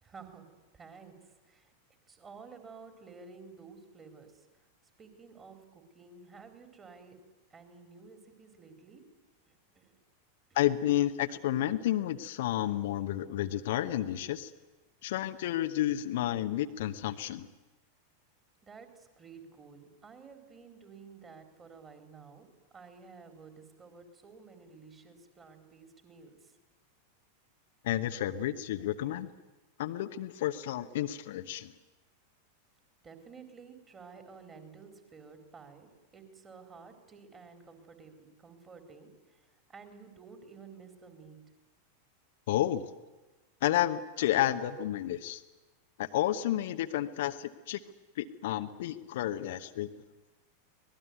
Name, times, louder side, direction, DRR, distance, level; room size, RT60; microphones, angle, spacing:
voice 1, 0.0-0.5 0.7-1.7 2.1-4.5 5.0-7.2 7.5-9.0 9.4-10.0 18.6-22.5 22.7-26.5 33.0-41.4, right 5 dB, 20° right, 5 dB, 4.2 m, -52 dB
voice 2, 10.5-14.5 15.0-17.5 27.8-29.3 29.8-31.7 42.5-42.8 43.6-45.4 46.0-47.8 48.2-50.1, left 13 dB, 55° left, 9 dB, 1.0 m, -31 dB
24.5 x 19.5 x 9.5 m, 1.2 s
figure-of-eight pair, 90°, 0 cm